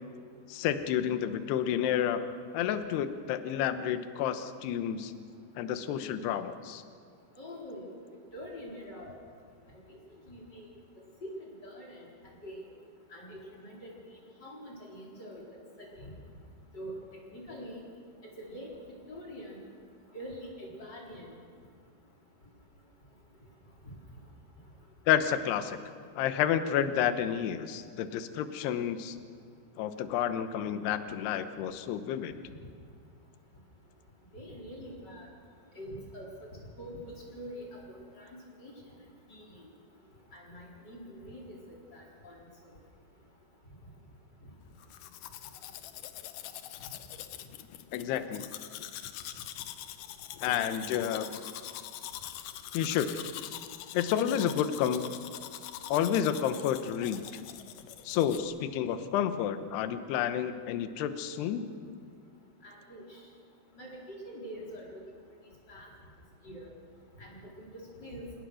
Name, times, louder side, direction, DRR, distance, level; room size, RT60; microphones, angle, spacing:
voice 1, 0.5-2.2 2.5-5.1 5.6-6.8 25.1-25.8 26.2-29.2 29.8-32.3 47.9-48.5 50.4-51.4 52.7-53.1 53.9-55.1 55.9-57.3 58.0-61.7, left 9 dB, 75° left, 10 dB, 2.9 m, -30 dB
voice 2, 7.4-7.9 8.3-9.2 10.3-10.7 11.2-12.1 12.4-12.6 13.1-13.9 14.4-15.4 15.8-16.1 16.7-16.9 17.3-17.8 18.4-18.7 19.1-19.6 20.1-21.3 34.3-35.3 35.7-36.3 36.8-37.0 37.3-38.3 38.6-38.7 39.3-39.4 40.3-41.6 41.9-42.4 62.6-63.2 63.8-65.0 65.7-65.9 66.4-66.7 67.2-67.7 68.0-68.3, equal, 25° left, -3 dB, 4.4 m, -44 dB
Domestic sounds home sounds, 44.8-58.4, left 12 dB, 90° left, 1.8 m, -44 dB
28.0 x 19.0 x 6.4 m, 2.2 s
omnidirectional pair, 5.1 m